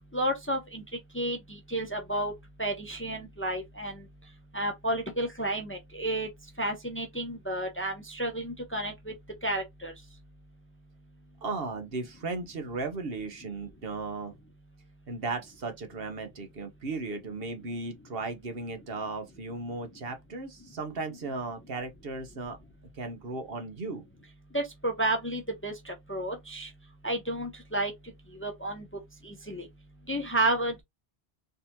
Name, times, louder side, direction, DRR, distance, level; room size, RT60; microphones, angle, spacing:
voice 1, 0.1-0.8 1.1-1.4 1.7-2.3 2.6-3.9 4.5-6.3 6.6-9.1 9.4-9.9 24.5-26.7 27.0-27.9 28.4-28.8 29.2-29.7 30.1-30.8, right 1 dB, 15° left, 0.6 m, -31 dB
voice 2, 11.4-14.3 15.1-22.6 22.9-24.0, right 3 dB, 65° right, 1.2 m, -36 dB
4.0 x 2.7 x 2.8 m
omnidirectional pair, 1.0 m